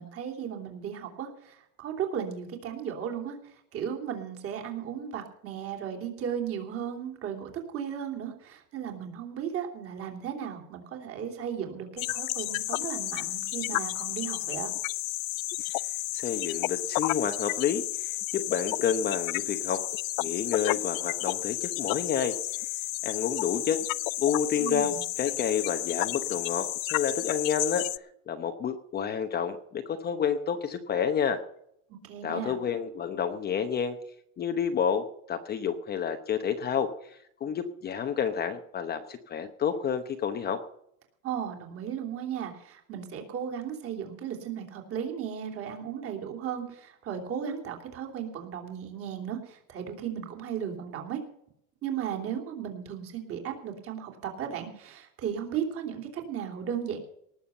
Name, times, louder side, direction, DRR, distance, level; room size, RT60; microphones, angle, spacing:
voice 1, 0.0-3.4 3.7-14.7 24.6-25.0 32.0-32.6 41.2-51.2 51.8-57.0, right 8 dB, 35° right, 3 dB, 3.1 m, -35 dB
sound 1, 12.0-28.0, left 23 dB, 80° left, 0.5 m, -32 dB
voice 2, 16.1-19.8 20.2-22.3 23.0-23.8 24.2-27.8 28.3-31.4 32.2-34.0 34.4-40.6, left 7 dB, 25° left, 7 dB, 0.9 m, -29 dB
19.0 x 7.2 x 6.9 m, 0.72 s
supercardioid pair, 155°, 40 cm